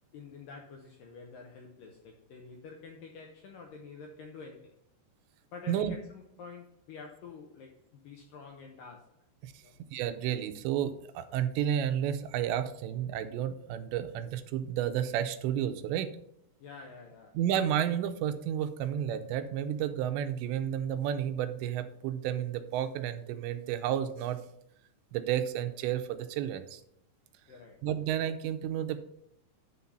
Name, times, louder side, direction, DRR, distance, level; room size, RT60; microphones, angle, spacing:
voice 1, 0.1-4.8 5.5-9.1 9.6-9.7 16.6-17.4 27.5-27.9, left 4 dB, 75° left, 2.0 m, -48 dB
voice 2, 9.4-16.1 17.3-24.4 25.1-26.8 27.8-29.0, right 10 dB, 90° right, 2.9 m, -31 dB
11.0 x 3.9 x 5.7 m
omnidirectional pair, 5.1 m